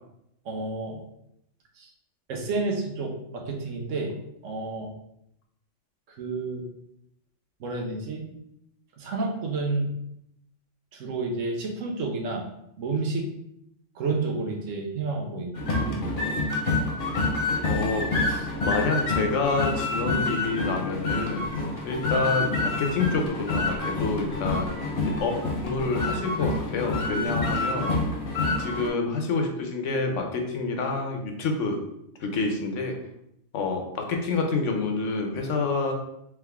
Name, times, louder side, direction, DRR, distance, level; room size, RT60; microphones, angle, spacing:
voice 1, 0.4-1.0 1.8-1.9 2.3-4.2 4.4-4.9 6.1-6.6 7.6-8.3 9.0-9.9 10.9-12.4 12.8-13.3 13.9-16.2, right 3 dB, 85° right, 2 dB, 1.1 m, -30 dB
sound 1, 15.5-28.9, left 2 dB, 45° left, 1.0 m, -27 dB
voice 2, 17.6-21.5 21.8-28.0 28.6-31.8 32.2-33.0 33.5-35.9, left 3 dB, 75° left, 3 dB, 1.0 m, -28 dB
3.6 x 3.2 x 3.4 m, 0.78 s
omnidirectional pair, 1.3 m